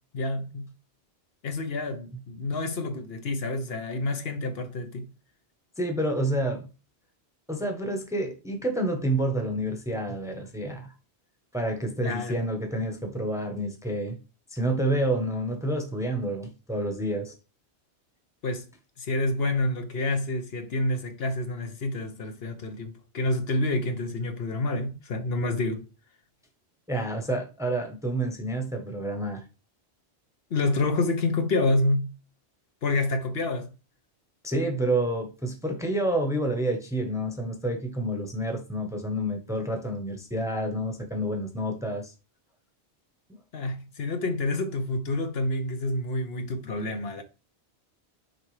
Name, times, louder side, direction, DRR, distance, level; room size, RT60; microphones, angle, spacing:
voice 1, 0.1-0.7 1.4-5.1 12.0-12.4 18.4-18.7 19.0-25.8 30.5-32.1 32.8-33.7 43.5-47.2, left 2 dB, 65° left, 1.1 m, -28 dB
voice 2, 5.8-6.7 7.5-10.9 11.5-14.2 14.5-17.3 26.9-29.4 34.4-42.1, right 1 dB, 5° right, 0.9 m, -29 dB
6.5 x 4.6 x 3.2 m
omnidirectional pair, 1.2 m